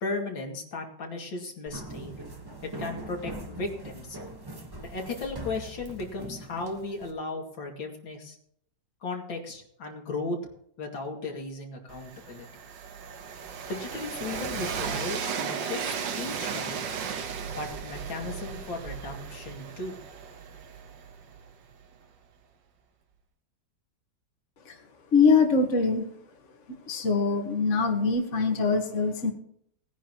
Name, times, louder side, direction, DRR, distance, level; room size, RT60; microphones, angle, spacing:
voice 1, 0.0-2.1 2.6-4.2 4.9-8.4 9.0-10.5 10.8-12.5 13.7-17.0 17.6-20.0, left 3 dB, 90° left, 1 dB, 3.2 m, -36 dB
sound 1, 1.7-7.1, right 1 dB, 15° right, 1.3 m, -41 dB
Train, 11.9-21.7, right 6 dB, 75° right, 1.8 m, -35 dB
voice 2, 25.1-26.1 26.9-29.3, left 4 dB, 40° left, 4 dB, 1.9 m, -23 dB
19.0 x 10.0 x 3.0 m, 0.67 s
omnidirectional pair, 2.0 m